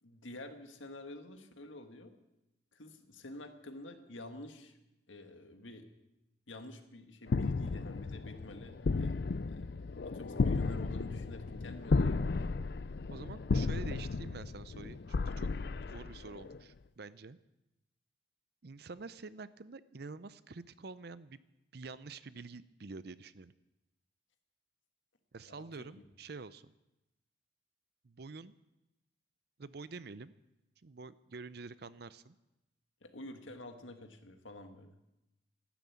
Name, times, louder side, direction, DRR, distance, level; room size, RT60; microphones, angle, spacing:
voice 1, 0.0-2.1 2.7-4.8 5.1-5.9 6.5-9.2 9.5-9.7 10.0-12.5 25.5-25.9 33.0-35.0, left 1 dB, 85° left, 6 dB, 1.7 m, -49 dB
sound 1, 7.3-16.6, left 3 dB, 55° left, 0.5 m, -34 dB
voice 2, 13.1-15.5 15.8-17.4 18.6-21.4 21.7-23.5 25.3-26.7 28.0-28.6 29.6-30.3 30.8-32.4, right 4 dB, 55° right, 16 dB, 0.6 m, -47 dB
13.0 x 12.0 x 8.5 m, 0.94 s
head